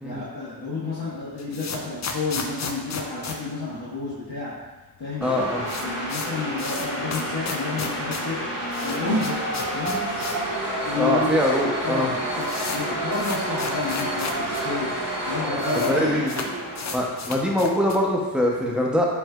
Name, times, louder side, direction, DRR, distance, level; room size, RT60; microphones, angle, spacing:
voice 1, 0.0-4.6 5.0-5.3 5.6-8.5 8.8-9.4 9.7-10.1 10.8-11.3 11.8-15.0 15.3-16.5, left 3 dB, 65° left, -9 dB, 1.0 m, -30 dB
sound 1, 1.1-4.4 4.6-4.7 5.0-5.1 5.3-10.5 10.8-10.9 11.6-11.7 11.9-14.6 14.9-15.0 15.2-15.9 16.2-18.1, left 4 dB, 45° left, 0.4 m, -34 dB
voice 2, 5.2-5.6 10.9-12.1 15.9-16.5 16.9-19.1, left 1 dB, ahead, -2 dB, 0.7 m, -23 dB
sound 2, 5.2-17.5, equal, 75° right, 1.5 m, -29 dB
4.5 x 3.2 x 2.3 m, 1.2 s
cardioid pair, 50°, 42 cm